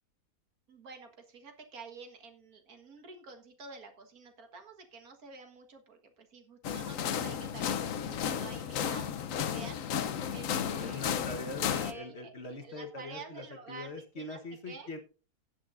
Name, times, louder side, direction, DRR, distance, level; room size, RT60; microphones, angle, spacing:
voice 1, 0.7-11.1 11.7-14.4 14.7-14.9, right 4 dB, 70° right, 6 dB, 2.1 m, -49 dB
sound 1, 6.6-11.9, left 8 dB, 65° left, 1.1 m, -33 dB
voice 2, 10.6-15.0, left 2 dB, 45° left, 5 dB, 1.5 m, -42 dB
17.0 x 7.8 x 2.5 m, 0.34 s
omnidirectional pair, 1.6 m